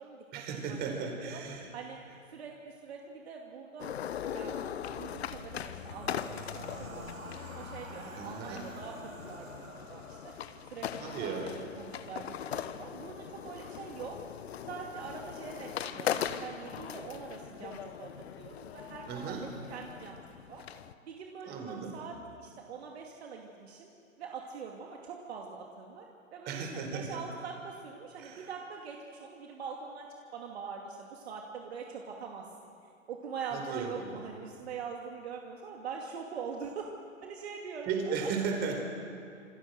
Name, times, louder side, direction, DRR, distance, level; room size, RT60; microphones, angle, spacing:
voice 1, 0.3-1.7 8.2-8.7 11.0-11.6 19.1-19.5 21.4-22.0 26.5-27.2 28.2-28.5 33.5-34.2 37.9-38.8, right 5 dB, 25° right, 3 dB, 4.8 m, -36 dB
voice 2, 2.3-3.9 4.3-4.6 4.9-10.3 10.7-14.2 14.7-19.4 19.7-20.2 20.5-20.6 21.0-23.9 24.2-26.1 26.3-26.6 26.9-30.1 30.3-32.7 33.1-36.9 37.2-38.3, right 6 dB, 50° right, 0 dB, 2.7 m, -43 dB
sound 1, 3.8-20.9, left 9 dB, 50° left, 1.2 m, -40 dB
sound 2, 5.7-10.9, right 3 dB, 80° right, 4.9 m, -49 dB
27.5 x 27.0 x 6.7 m, 2.5 s
figure-of-eight pair, 120°, 40 cm